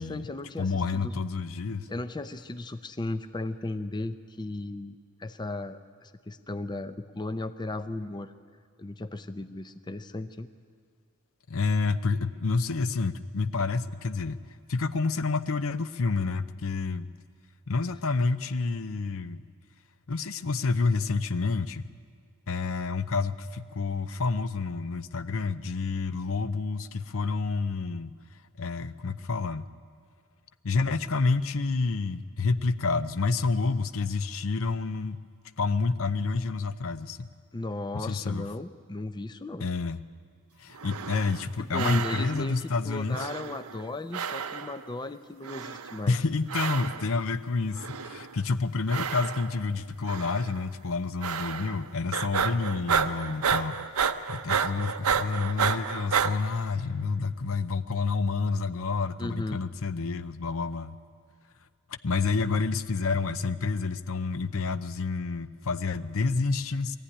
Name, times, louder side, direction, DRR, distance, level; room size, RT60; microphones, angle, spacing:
voice 1, 0.0-1.1 1.9-8.3 8.8-10.5 37.5-39.7 41.6-46.2 59.2-59.6, left 2 dB, 20° left, 10 dB, 0.5 m, -36 dB
voice 2, 0.6-1.9 11.5-14.4 14.7-17.1 17.7-19.4 20.1-21.9 22.5-28.1 28.6-29.7 30.6-35.2 35.6-37.3 37.9-38.5 39.6-40.0 40.6-43.3 46.1-61.0 61.9-67.0, left 4 dB, 65° left, 12 dB, 0.7 m, -29 dB
sound 1, 40.7-41.5 41.7-42.6 43.1-43.9 44.1-44.9 45.4-46.1 46.5-47.2 47.7-48.4 48.9-49.7 50.1-50.5 51.2-51.8 52.1-56.3, right 6 dB, 75° right, 0.8 m, -30 dB
21.5 x 14.5 x 10.0 m, 2.1 s
head